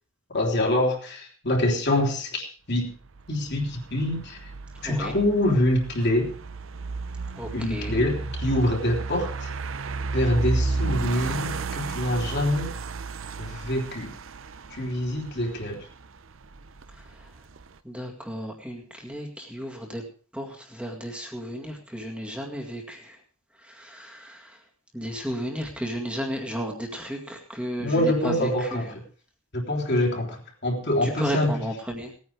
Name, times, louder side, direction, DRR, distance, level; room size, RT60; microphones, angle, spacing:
voice 1, 0.3-2.9 3.3-4.4 4.8-6.3 7.5-9.5 10.1-12.7 13.4-14.1 14.7-15.8 27.8-28.9 29.5-31.5, left 1 dB, 55° left, 0 dB, 3.4 m, -25 dB
sound 1, 3.0-17.8, right 3 dB, 65° right, 0.7 m, -33 dB
voice 2, 4.8-5.1 7.3-8.0 16.9-17.3 17.8-20.0 20.3-23.2 23.5-24.6 24.9-28.8 31.0-32.1, equal, 5° right, 0 dB, 2.0 m, -34 dB
18.0 x 9.5 x 5.1 m, 0.41 s
head